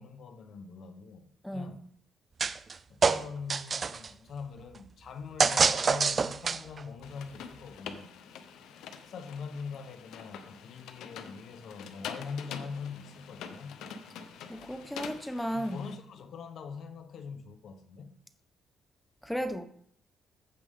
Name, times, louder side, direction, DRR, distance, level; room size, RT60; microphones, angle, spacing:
voice 1, 0.0-1.8 2.9-8.1 9.1-13.8 15.5-18.1, left 5 dB, 65° left, 1.0 m, -43 dB
voice 2, 1.4-1.8 14.5-15.8 19.2-19.6, equal, 5° left, 0.8 m, -34 dB
sound 1, 2.4-2.7 3.0-4.1 5.4-6.8, right 5 dB, 40° right, 0.5 m, -26 dB
sound 2, 7.0-15.9, left 7 dB, 85° left, 0.8 m, -45 dB
15.0 x 5.3 x 3.7 m
cardioid pair, 90°, 0 cm